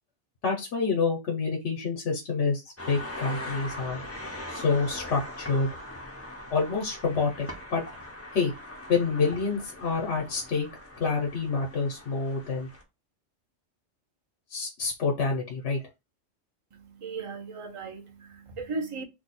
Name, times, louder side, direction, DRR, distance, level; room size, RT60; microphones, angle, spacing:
voice 1, 0.4-4.0 4.5-5.7 6.5-7.8 8.3-8.5 8.9-10.7 11.0-12.7 14.5-15.8, left 4 dB, 75° left, 1.1 m, -27 dB
sound 1, 2.8-12.8, left 1 dB, 15° left, 0.5 m, -41 dB
voice 2, 16.7-19.0, right 4 dB, 35° right, 0.5 m, -37 dB
2.7 x 2.3 x 4.1 m
omnidirectional pair, 1.2 m